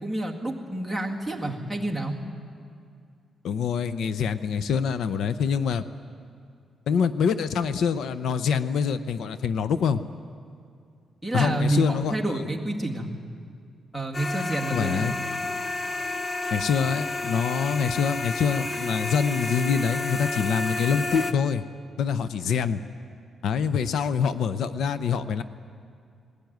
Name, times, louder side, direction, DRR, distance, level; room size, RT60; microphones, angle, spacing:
voice 1, 0.0-2.2 11.2-13.1 13.9-15.1, right 1 dB, 5° left, 2 dB, 2.0 m, -28 dB
voice 2, 3.4-5.8 6.9-10.0 11.3-12.5 14.7-15.1 16.5-21.6 22.0-22.8 23.4-25.4, left 6 dB, 75° left, 12 dB, 0.6 m, -25 dB
sound 1, 14.1-21.3, left 2 dB, 30° left, 0.8 m, -31 dB
20.5 x 16.5 x 9.3 m, 2.3 s
cardioid pair, 140°, 0 cm